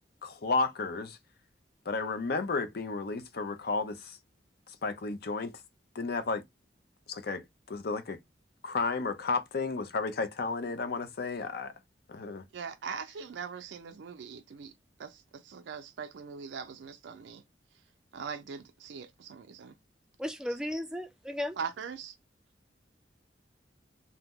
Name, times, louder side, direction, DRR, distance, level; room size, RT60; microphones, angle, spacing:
voice 1, 0.2-1.2 1.9-4.2 4.7-5.5 5.9-6.4 7.1-8.2 8.6-11.7 12.1-12.4, left 4 dB, 60° left, 0.5 m, -32 dB
voice 2, 12.5-14.7 15.0-17.4 18.1-19.7 21.6-22.2, right 6 dB, 80° right, 0.4 m, -41 dB
voice 3, 20.2-21.6, left 1 dB, 5° right, 0.3 m, -35 dB
2.7 x 2.0 x 3.5 m
head